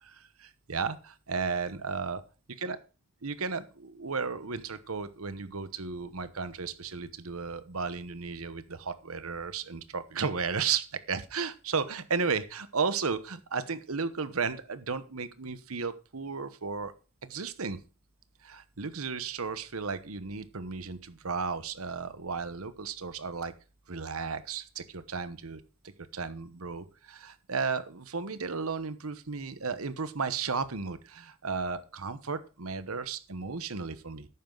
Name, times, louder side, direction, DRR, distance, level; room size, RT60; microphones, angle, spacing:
voice 1, 0.0-2.2 2.6-2.8 3.2-16.9 17.2-17.8 18.4-23.5 23.9-25.6 26.1-34.3, right 5 dB, 75° right, 13 dB, 1.1 m, -34 dB
11.5 x 9.1 x 3.9 m, 0.34 s
head